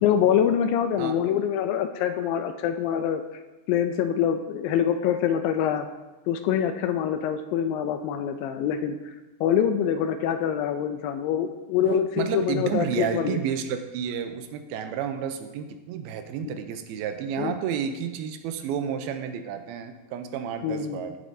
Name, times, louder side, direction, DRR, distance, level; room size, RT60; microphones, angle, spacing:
voice 1, 0.0-3.2 3.7-5.9 6.3-8.9 9.4-13.4 17.4-17.6 20.6-21.0, left 9 dB, 80° left, 8 dB, 2.2 m, -25 dB
voice 2, 11.8-21.2, right 8 dB, 85° right, 8 dB, 2.5 m, -31 dB
16.0 x 7.3 x 2.7 m, 1.1 s
omnidirectional pair, 4.3 m